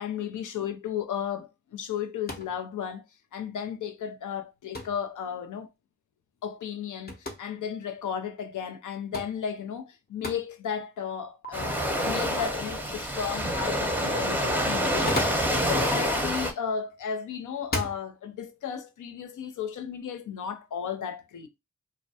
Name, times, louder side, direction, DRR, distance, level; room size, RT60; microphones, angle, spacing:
voice 1, 0.0-3.0 3.3-5.7 6.4-7.1 7.4-21.5, left 7 dB, 85° left, 0.5 m, -34 dB
sound 1, 2.2-2.6 4.7-5.0 7.1-7.4 9.1-9.4 10.2-10.4 11.4-11.5 14.8-15.6 16.7-17.0 17.6-18.0, left 1 dB, 35° left, 0.7 m, -34 dB
Waves surf, 11.5-16.5, equal, 5° right, 0.6 m, -27 dB
2.2 x 2.1 x 2.7 m
cardioid pair, 45°, 30 cm